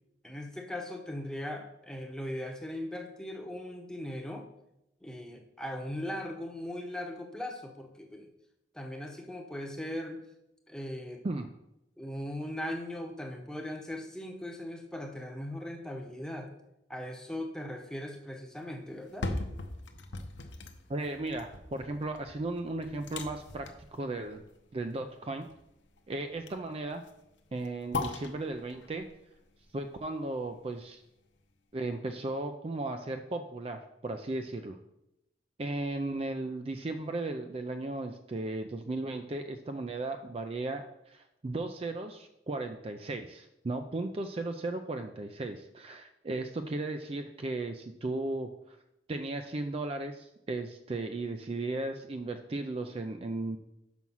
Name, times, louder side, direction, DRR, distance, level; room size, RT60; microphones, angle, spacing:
voice 1, 0.2-4.5 5.0-8.3 8.7-10.2 10.7-11.3 12.0-16.5 16.9-19.3, left 1 dB, 5° left, 3 dB, 0.9 m, -39 dB
sound 1, 18.9-31.0 31.4-31.5, left 3 dB, 90° left, 0.8 m, -41 dB
voice 2, 20.9-24.4 24.7-25.5 26.1-27.0 27.5-29.1 29.7-31.0 31.7-34.8 35.6-48.8 49.1-53.6, right 2 dB, 35° right, 6 dB, 0.4 m, -36 dB
6.1 x 5.9 x 5.5 m, 0.86 s
head